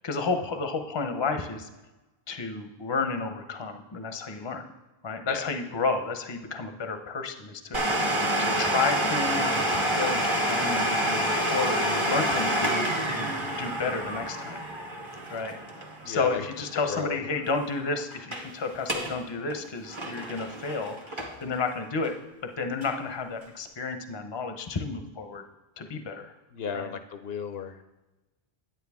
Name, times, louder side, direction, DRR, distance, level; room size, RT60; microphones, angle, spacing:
voice 1, 0.0-1.7 2.3-4.6 5.0-7.8 8.4-10.2 10.4-13.3 13.6-14.6 15.3-15.6 16.1-22.1 22.6-25.4 25.8-26.3 26.7-26.9, left 4 dB, 30° left, 6 dB, 0.7 m, -31 dB
Domestic sounds home sounds, 7.7-17.2 17.4-17.5 18.1-18.5 18.8-19.2 19.5-21.6 22.0-22.1 22.8-22.9, right 1 dB, 30° right, 1.1 m, -28 dB
voice 2, 16.0-17.2 26.5-27.8, left 6 dB, 70° left, 8 dB, 0.8 m, -35 dB
9.4 x 9.0 x 3.5 m, 1.1 s
omnidirectional pair, 1.1 m